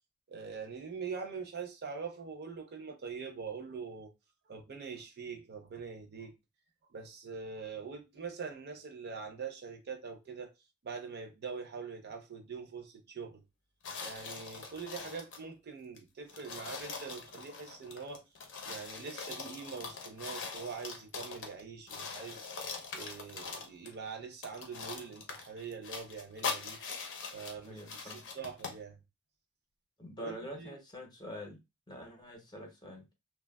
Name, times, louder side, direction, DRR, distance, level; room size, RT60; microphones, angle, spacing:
voice 1, 0.3-4.1 4.5-6.3 6.9-10.5 10.8-13.4 14.0-18.2 18.6-22.5 22.9-26.8 27.3-29.0 30.2-30.8, right 5 dB, 50° right, 0.5 m, -43 dB
sound 1, 13.8-15.5 16.0-16.1 16.3-21.6 21.9-24.0 24.4-28.8, left 5 dB, 60° left, 0.6 m, -42 dB
voice 2, 27.7-28.3 30.0-31.6 31.9-33.0, equal, 20° left, 0.7 m, -45 dB
3.0 x 2.2 x 2.2 m
head